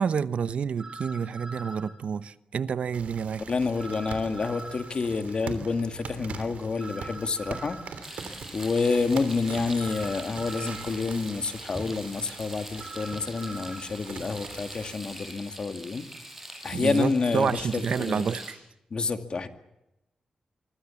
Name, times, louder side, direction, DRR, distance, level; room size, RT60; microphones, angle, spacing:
voice 1, 0.0-3.4 16.7-18.6, right 6 dB, 70° right, 0.9 m, -29 dB
sound 1, 0.8-1.9 3.8-4.9 6.8-7.9 9.8-10.9 12.8-13.8, right 2 dB, 35° right, 7.8 m, -42 dB
sound 2, 2.9-15.0, right 5 dB, 85° right, 3.2 m, -43 dB
voice 2, 3.5-16.1 16.6-18.3 18.9-19.5, left 4 dB, 45° left, 2.2 m, -29 dB
Frying (food), 8.0-18.5, right 1 dB, 10° right, 6.7 m, -43 dB
25.0 x 24.5 x 7.2 m
wide cardioid pair, 125°, 2 cm